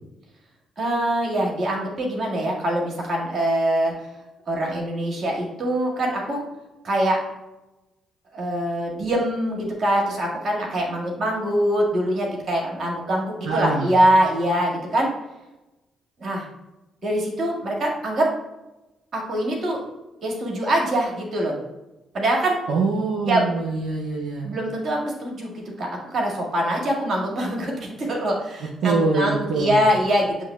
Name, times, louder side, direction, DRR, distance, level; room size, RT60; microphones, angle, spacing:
voice 1, 0.8-4.1 4.5-6.4 6.8-7.2 8.3-15.1 16.2-16.5 17.0-18.3 19.1-19.8 20.2-21.5 22.1-22.6 23.2-23.5 24.4-30.4, right 1 dB, 45° right, -2 dB, 1.6 m, -23 dB
voice 2, 13.5-13.9 22.7-24.5 28.8-29.8, right 3 dB, 65° right, -1 dB, 0.5 m, -24 dB
8.1 x 3.0 x 2.2 m, 1.0 s
figure-of-eight pair, 40°, 0 cm